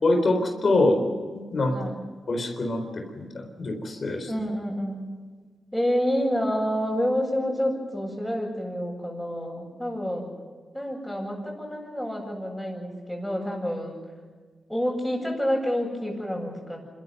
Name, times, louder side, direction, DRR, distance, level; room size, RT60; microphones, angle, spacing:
voice 1, 0.0-1.0 1.3-1.9 2.3-4.3, left 2 dB, 55° left, 4 dB, 4.0 m, -25 dB
voice 2, 1.7-2.0 4.3-5.1 5.7-10.3 10.7-14.0 14.7-16.8, equal, 5° left, -7 dB, 7.2 m, -28 dB
26.5 x 13.5 x 9.1 m, 1.5 s
cardioid pair, 50°, 0 cm